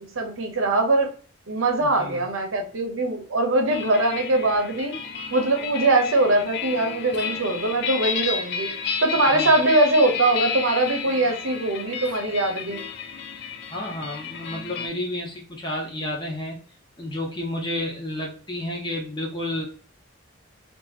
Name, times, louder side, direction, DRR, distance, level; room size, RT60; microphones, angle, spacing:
voice 1, 0.2-1.1 1.5-5.0 5.3-8.7 9.0-12.8, right 2 dB, 75° right, 4 dB, 0.8 m, -22 dB
voice 2, 1.8-2.3 9.3-9.5 13.7-16.6 17.0-19.7, left 1 dB, 20° left, 0 dB, 0.7 m, -31 dB
sound 1, 3.7-14.9, left 6 dB, 50° left, 0.4 m, -32 dB
2.8 x 2.5 x 2.4 m, 0.41 s
head